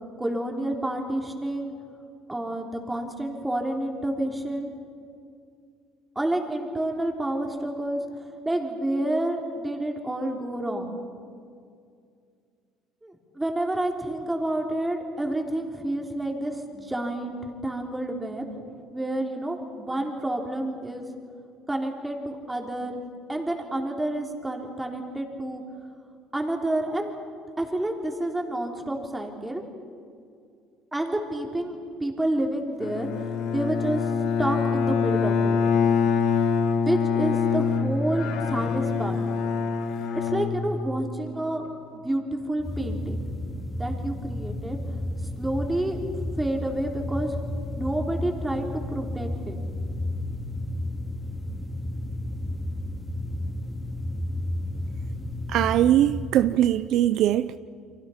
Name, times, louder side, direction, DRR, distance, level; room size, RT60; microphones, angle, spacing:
voice 1, 0.2-1.7 2.3-4.7 6.2-10.9 13.0-21.1 21.7-23.0 23.3-25.6 26.3-27.2 27.6-29.6 30.9-33.1 33.5-34.1 34.4-35.6 36.3-36.4 36.8-39.2 40.2-41.6 41.9-43.3 43.8-44.8 45.4-46.0 46.3-47.4 47.7-49.6, right 1 dB, 10° right, 2 dB, 3.6 m, -29 dB
Bowed string instrument, 32.8-41.3, left 5 dB, 70° left, 2.0 m, -25 dB
sound 1, 42.6-56.3, left 1 dB, 10° left, 3.7 m, -32 dB
voice 2, 55.5-57.6, right 12 dB, 65° right, 13 dB, 0.6 m, -21 dB
29.5 x 24.0 x 5.8 m, 2.3 s
cardioid pair, 110°, 0 cm